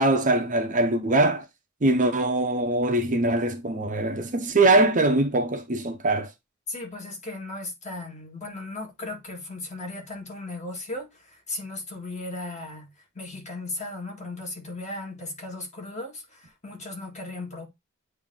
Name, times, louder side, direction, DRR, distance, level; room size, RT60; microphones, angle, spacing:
voice 1, 0.0-1.4 1.8-6.3, right 2 dB, 35° right, 0.8 m, -22 dB
voice 2, 6.7-17.7, left 2 dB, 35° left, 1.9 m, -36 dB
8.7 x 2.9 x 3.8 m
head